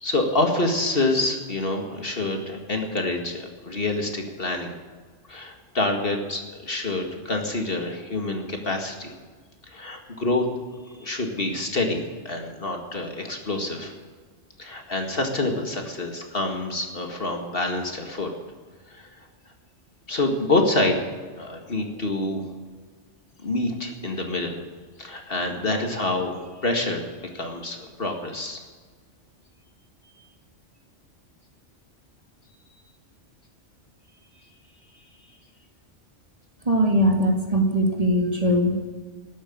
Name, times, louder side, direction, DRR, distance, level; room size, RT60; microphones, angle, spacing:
voice 1, 0.0-4.8 5.3-9.1 9.7-10.4 10.9-13.9 14.6-18.3 18.9-19.1 20.1-21.0 21.4-22.5 23.4-24.6 25.0-28.6, left 2 dB, 50° left, 3 dB, 2.2 m, -27 dB
voice 2, 36.7-38.9, equal, 30° right, 2 dB, 2.1 m, -21 dB
13.0 x 12.0 x 8.7 m, 1.5 s
omnidirectional pair, 1.2 m